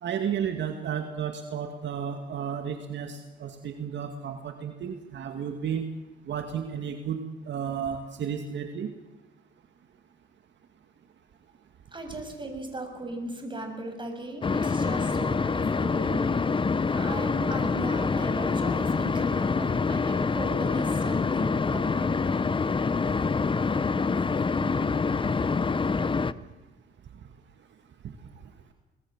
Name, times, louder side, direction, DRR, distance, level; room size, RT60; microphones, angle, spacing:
voice 1, 0.0-5.8 6.3-7.2 7.5-8.9 24.6-25.0 28.0-28.2, right 8 dB, 65° right, 5 dB, 2.3 m, -33 dB
voice 2, 11.9-22.2, right 1 dB, 25° right, 4 dB, 7.0 m, -37 dB
sound 1, 14.4-26.3, left 4 dB, 25° left, 0.9 m, -26 dB
24.5 x 19.5 x 7.5 m, 1.1 s
cardioid pair, 90°, 20 cm